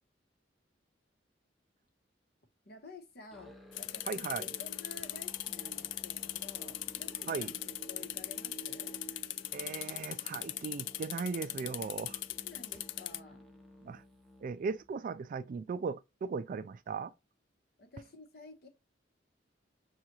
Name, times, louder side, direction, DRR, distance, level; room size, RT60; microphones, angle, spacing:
voice 1, 2.6-9.0 12.3-13.4 17.8-18.7, left 3 dB, 60° left, 1.0 m, -52 dB
Musical instrument, 3.3-14.9, right 1 dB, ahead, 0.6 m, -53 dB
sound 1, 3.7-13.2, left 15 dB, 85° left, 0.3 m, -40 dB
voice 2, 4.1-4.4 7.3-7.5 9.5-12.2 13.8-14.0 14.4-17.1, right 5 dB, 45° right, 0.3 m, -37 dB
6.4 x 2.4 x 2.9 m
head